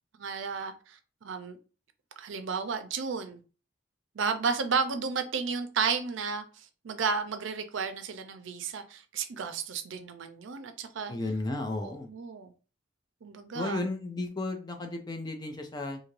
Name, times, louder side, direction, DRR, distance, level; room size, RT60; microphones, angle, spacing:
voice 1, 0.2-1.6 2.2-3.4 4.1-11.1 11.8-12.5 13.2-13.8, right 5 dB, 65° right, 0.5 m, -33 dB
voice 2, 11.1-12.1 13.5-16.0, left 2 dB, 20° left, 0.4 m, -34 dB
2.6 x 2.5 x 3.1 m
head